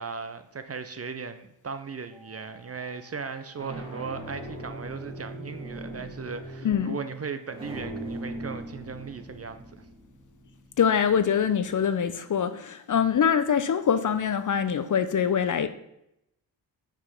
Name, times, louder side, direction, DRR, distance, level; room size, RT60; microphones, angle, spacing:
voice 1, 0.0-9.6, right 5 dB, 30° right, 10 dB, 0.6 m, -37 dB
sound 1, 2.1-2.6 3.3-12.0, right 1 dB, 10° right, 2.2 m, -41 dB
voice 2, 6.6-7.0 10.8-15.7, left 7 dB, 40° left, 11 dB, 0.6 m, -24 dB
5.8 x 4.6 x 5.3 m, 0.81 s
hypercardioid pair, 40°, 49 cm